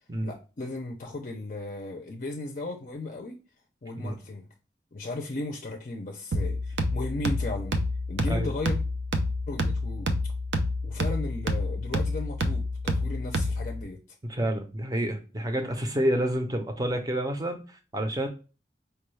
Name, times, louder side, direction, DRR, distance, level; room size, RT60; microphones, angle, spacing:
voice 1, 0.2-3.4 3.8-4.5 4.9-7.8 8.1-8.8 9.5-10.2 10.8-14.0, left 2 dB, 45° left, 0.5 m, -36 dB
sound 1, 6.3-13.8, left 1 dB, 85° right, 0.6 m, -28 dB
voice 2, 14.2-18.3, right 1 dB, 20° right, 0.6 m, -29 dB
4.5 x 2.3 x 3.1 m
head